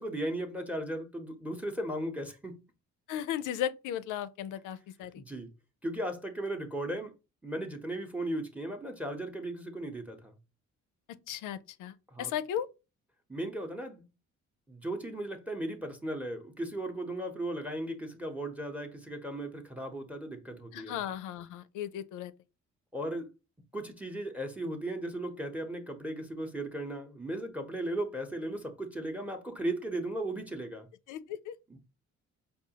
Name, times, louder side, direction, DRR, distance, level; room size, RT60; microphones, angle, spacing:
voice 1, 0.0-2.6 5.2-5.5 5.8-7.1 7.4-10.3 12.1-12.3 13.3-14.1 14.7-21.0 22.9-23.3 23.7-30.9 31.7-31.8, right 1 dB, 5° right, 0.7 m, -36 dB
voice 2, 3.1-5.2 11.3-12.7 20.7-22.3 31.1-31.5, left 10 dB, 90° left, 0.5 m, -36 dB
4.8 x 2.3 x 2.8 m
cardioid pair, 90°, 30 cm